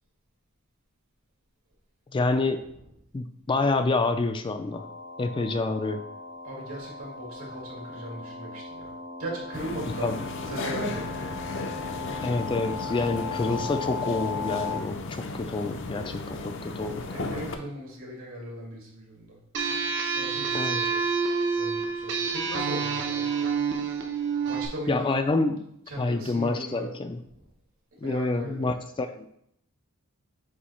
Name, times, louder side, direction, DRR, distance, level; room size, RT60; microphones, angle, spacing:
voice 1, 2.1-2.6 3.1-4.9 5.2-6.0 10.0-10.2 12.2-16.9 20.5-20.9 24.9-25.7 26.0-27.2 28.0-29.3, left 3 dB, 25° left, 8 dB, 0.3 m, -27 dB
voice 2, 2.7-3.0 6.4-10.1 10.4-11.1 16.7-19.4 20.1-21.0 21.5-23.3 24.5-25.2 25.9-26.9 27.3-27.5 28.0-28.7, right 1 dB, 75° right, -2 dB, 2.2 m, -38 dB
sound 1, 4.7-14.8, left 4 dB, 75° left, 1.4 m, -37 dB
sound 2, 9.5-17.6, left 3 dB, 60° left, 0.6 m, -35 dB
sound 3, 19.5-24.7, right 5 dB, 55° right, 0.8 m, -28 dB
8.2 x 2.8 x 4.4 m, 0.73 s
head